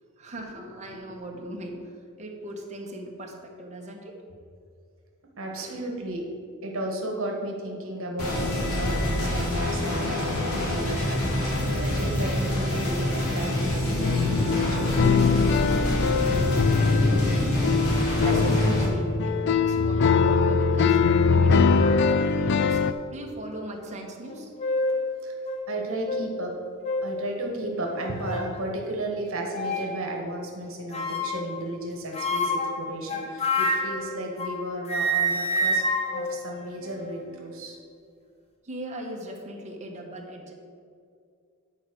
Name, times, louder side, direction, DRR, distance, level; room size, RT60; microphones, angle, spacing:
voice 1, 0.2-1.9 2.2-4.2 5.5-5.8 18.1-24.5 25.5-25.6 38.6-40.5, right 1 dB, 35° right, 0 dB, 1.3 m, -38 dB
voice 2, 5.4-6.2 6.6-15.7 16.0-16.4 25.2-25.3 25.7-26.6 27.0-35.8 36.1-37.8, right 1 dB, 65° right, 0 dB, 1.5 m, -34 dB
sound 1, 8.2-18.8, left 1 dB, 90° left, 2.4 m, -26 dB
sound 2, 14.0-22.9, left 5 dB, 55° left, 0.4 m, -22 dB
sound 3, 21.4-21.5 21.8-22.2 22.9-23.0 24.3-25.0 25.5-25.6 26.1-26.2 26.8-27.1 27.8-28.5 29.5-30.0 30.9-31.5 32.1-34.6 34.9-37.2, left 1 dB, 30° left, 1.1 m, -28 dB
10.5 x 4.5 x 6.2 m, 2.3 s
head